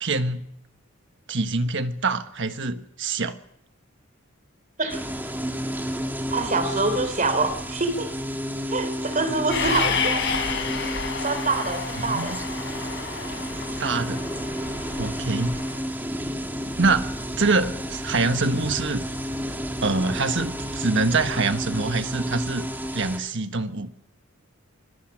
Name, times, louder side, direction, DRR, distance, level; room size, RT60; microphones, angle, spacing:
voice 1, 0.0-0.5 1.3-3.4 12.0-12.4 13.8-14.3 15.0-15.6 16.8-17.1 17.4-19.1 19.8-22.7 22.9-23.9, right 3 dB, 60° right, 8 dB, 1.4 m, -25 dB
sound 1, 4.9-23.2, equal, 10° right, 2.5 m, -31 dB
voice 2, 6.3-8.1 8.7-10.2 11.2-12.3, right 3 dB, 40° right, 10 dB, 3.4 m, -25 dB
Train, 9.5-15.8, left 5 dB, 55° left, 5.4 m, -30 dB
25.5 x 21.5 x 6.3 m, 0.74 s
head